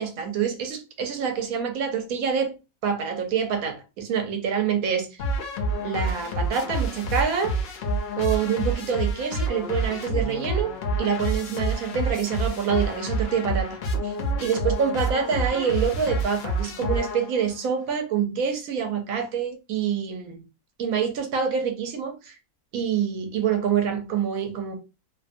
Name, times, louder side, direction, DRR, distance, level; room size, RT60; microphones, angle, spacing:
voice 1, 0.0-2.5 2.8-5.1 5.8-7.6 8.2-13.8 14.0-14.1 14.4-20.4 20.8-22.3 22.7-24.8, right 7 dB, 70° right, 1.0 m, -26 dB
sound 1, 5.2-17.6, right 1 dB, 70° left, 0.6 m, -28 dB
2.6 x 2.2 x 2.5 m
omnidirectional pair, 1.6 m